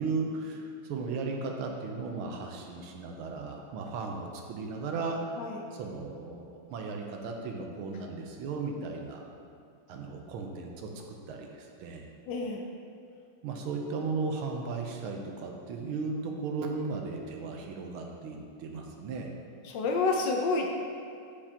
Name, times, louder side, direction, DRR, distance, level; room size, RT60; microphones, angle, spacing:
voice 1, 0.0-5.4 5.7-9.2 9.9-12.0 13.4-19.3, right 4 dB, 85° right, 1 dB, 1.6 m, -36 dB
voice 2, 5.4-5.7 12.3-12.7 19.6-20.7, left 3 dB, 70° left, 2 dB, 1.1 m, -29 dB
7.1 x 7.1 x 2.8 m, 2.4 s
omnidirectional pair, 2.3 m